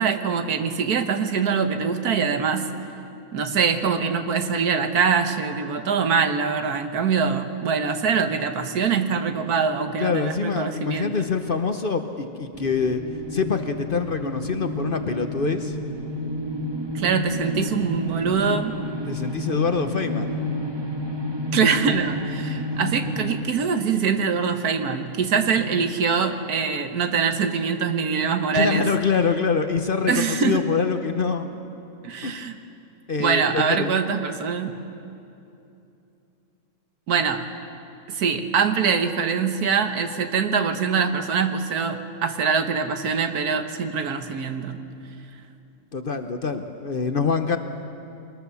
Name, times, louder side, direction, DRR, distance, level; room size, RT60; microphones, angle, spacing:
voice 1, 0.0-2.7 3.3-11.2 16.9-18.7 21.5-28.9 30.1-30.6 32.0-32.6 33.2-34.8 37.1-37.4 38.1-44.8, right 6 dB, 85° right, 8 dB, 1.6 m, -23 dB
voice 2, 10.0-13.0 13.3-15.8 19.1-20.4 25.5-25.6 28.5-31.5 32.2-32.4 33.1-33.9 45.9-47.6, left 5 dB, 45° left, 7 dB, 0.9 m, -25 dB
sound 1, 12.5-23.4, left 1 dB, 20° right, 1.3 m, -30 dB
23.5 x 19.5 x 7.0 m, 2.8 s
omnidirectional pair, 1.6 m